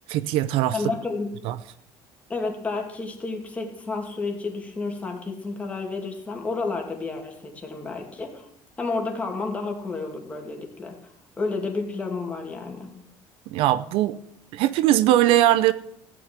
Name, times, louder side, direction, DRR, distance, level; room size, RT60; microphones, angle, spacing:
voice 1, 0.1-0.8 1.4-1.6 13.5-14.2 14.5-15.7, right 13 dB, 70° right, 15 dB, 0.7 m, -20 dB
voice 2, 0.7-1.3 2.3-8.5 8.8-12.9, left 3 dB, 15° left, 1 dB, 2.6 m, -31 dB
16.0 x 6.3 x 9.7 m, 0.75 s
cardioid pair, 160°, 10 cm